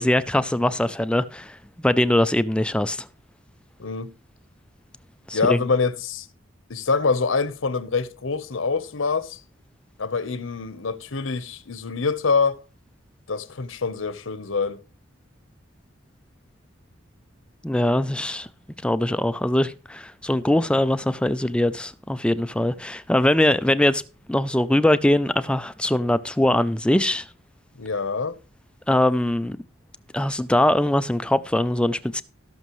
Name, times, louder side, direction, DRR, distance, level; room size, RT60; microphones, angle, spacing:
voice 1, 0.0-1.6 1.8-3.1 5.3-5.6 17.6-18.5 18.8-24.0 24.3-27.3 28.9-29.6 30.1-32.2, left 1 dB, 5° left, 0.4 m, -22 dB
voice 2, 3.8-4.1 5.3-6.3 6.7-9.4 10.0-12.6 13.3-14.8 27.8-28.4, left 4 dB, 85° left, 0.9 m, -25 dB
18.0 x 6.3 x 3.1 m
head